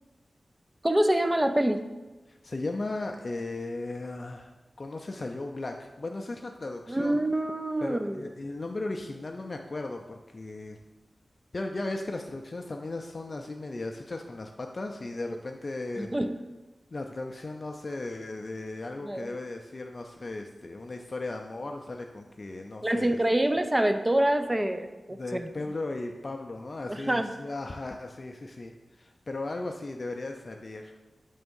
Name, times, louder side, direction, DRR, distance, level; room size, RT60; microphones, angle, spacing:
voice 1, 0.8-1.8 6.9-8.2 16.0-16.4 19.0-19.3 22.8-25.5 26.9-27.3, right 1 dB, 20° right, 8 dB, 0.4 m, -26 dB
voice 2, 2.3-7.2 7.8-10.8 11.5-16.1 16.9-23.2 25.1-31.0, left 2 dB, 45° left, 3 dB, 0.4 m, -36 dB
5.4 x 3.4 x 5.3 m, 1.1 s
wide cardioid pair, 70°, 0 cm